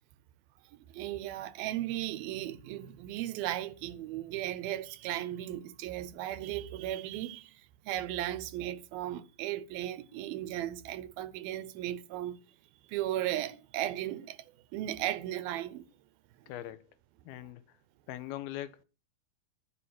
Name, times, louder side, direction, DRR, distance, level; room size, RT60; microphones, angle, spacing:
voice 1, 0.7-12.4 12.9-14.5 14.7-15.8, right 13 dB, 85° right, 2.7 m, -36 dB
voice 2, 16.5-16.9 17.3-17.6 18.1-18.8, left 13 dB, 90° left, 2.9 m, -41 dB
11.0 x 6.8 x 8.8 m
omnidirectional pair, 4.2 m